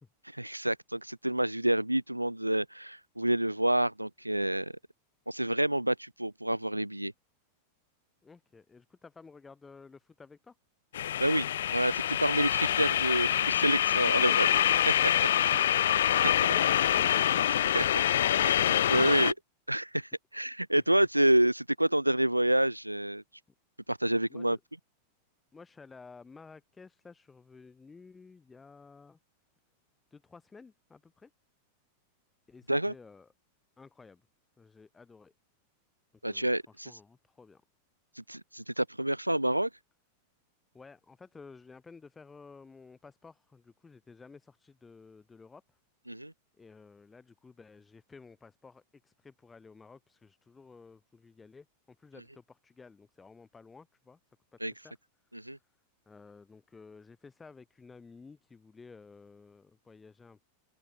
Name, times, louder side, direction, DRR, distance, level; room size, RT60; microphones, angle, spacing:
voice 1, 0.3-4.7 5.3-7.1 11.2-11.5 11.7-14.5 16.1-16.3 17.7-17.9 18.4-18.5 18.9-19.3 19.7-23.2 23.9-24.6 32.7-32.9 36.2-36.9 38.2-39.7 46.1-46.3 54.6-54.7 55.3-55.6, right 1 dB, 85° right, 0.5 m, -28 dB
voice 2, 8.2-10.6 14.1-14.4 20.7-20.8 24.3-24.6 25.5-29.2 30.1-31.3 32.5-33.3 33.8-34.2 34.6-35.3 36.2-37.6 40.7-45.8 46.6-54.4 54.6-54.9 55.3-55.5 56.1-60.4, left 4 dB, 15° left, 7.8 m, -53 dB
sound 1, 10.9-19.3, left 11 dB, 60° left, 0.9 m, -26 dB
open air
figure-of-eight pair, 90°, 0 cm